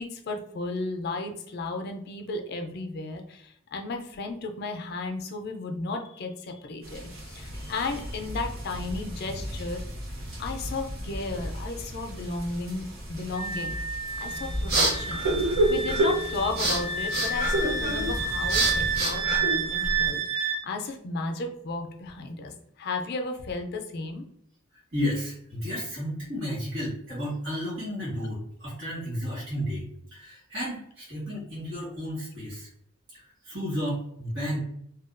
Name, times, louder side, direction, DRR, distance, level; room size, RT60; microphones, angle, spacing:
voice 1, 0.0-9.8 10.4-13.8 14.2-24.2, left 3 dB, 50° left, 4 dB, 0.4 m, -34 dB
sound 1, 6.8-19.0, equal, 85° right, 1.2 m, -37 dB
Wind instrument woodwind instrument, 13.3-20.6, right 4 dB, 30° right, 0.4 m, -30 dB
sound 2, 14.2-20.1, right 1 dB, 50° right, 0.7 m, -27 dB
voice 2, 24.7-32.7 33.1-34.6, equal, 65° right, -8 dB, 1.4 m, -32 dB
2.7 x 2.2 x 2.4 m, 0.73 s
head